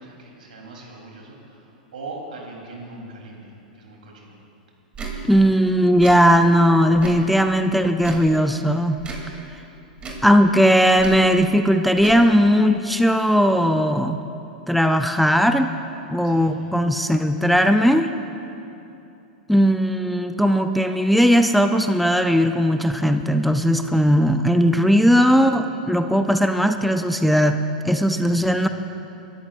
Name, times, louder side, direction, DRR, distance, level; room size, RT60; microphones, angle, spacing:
voice 1, 0.0-4.4 16.2-16.9 28.1-28.7, right 2 dB, 80° right, -1 dB, 3.5 m, -41 dB
Tick / Tick-tock, 4.9-5.2 5.9-6.2 6.9-7.3 8.0-8.3 9.0-9.3 10.0-10.3 11.0-11.2 12.0-12.2, right 3 dB, 25° right, 2.9 m, -34 dB
voice 2, 5.3-9.0 10.2-14.2 14.7-15.7 16.1-18.1 19.5-27.6 27.8-28.7, equal, ahead, 7 dB, 0.5 m, -18 dB
25.5 x 13.0 x 2.5 m, 2.8 s
hypercardioid pair, 105°, 5 cm